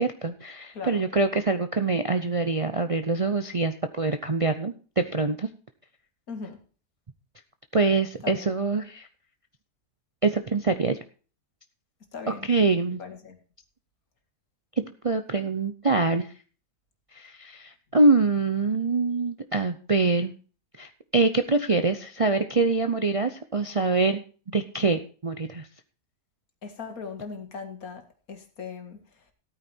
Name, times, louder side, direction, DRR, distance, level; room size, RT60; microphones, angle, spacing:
voice 1, 0.0-5.5 7.7-9.1 10.2-11.0 12.5-13.0 14.8-16.3 17.1-20.3 20.8-24.2 24.5-25.7, right 3 dB, 55° right, 0.3 m, -24 dB
voice 2, 0.7-1.1 6.3-6.6 8.2-8.5 12.1-12.5 13.0-13.4 26.6-29.3, left 5 dB, 60° left, 2.3 m, -39 dB
14.0 x 9.1 x 4.3 m
omnidirectional pair, 1.7 m